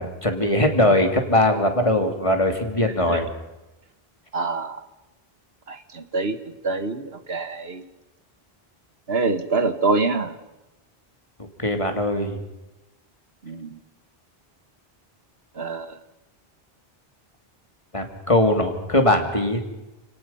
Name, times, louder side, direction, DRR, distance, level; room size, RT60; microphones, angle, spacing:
voice 1, 0.0-3.3 11.6-12.4 17.9-19.6, left 1 dB, 30° left, 5 dB, 2.8 m, -21 dB
voice 2, 4.3-4.8 5.7-6.4 6.6-7.8 9.1-10.3 13.5-13.7 15.6-15.9, right 3 dB, 75° right, 9 dB, 1.7 m, -25 dB
29.0 x 18.5 x 5.7 m, 1.0 s
omnidirectional pair, 1.0 m